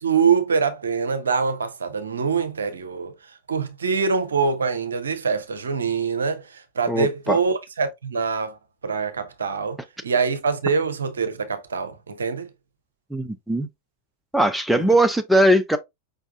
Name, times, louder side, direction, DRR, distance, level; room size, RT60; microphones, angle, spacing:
voice 1, 0.0-3.1 3.5-8.6 8.8-9.8 10.0-12.5 14.7-14.9, right 5 dB, 70° right, 0.6 m, -24 dB
voice 2, 6.9-7.4 13.1-13.7 14.3-15.8, right 1 dB, ahead, 0.5 m, -20 dB
5.1 x 3.4 x 2.4 m
figure-of-eight pair, 90°, 0 cm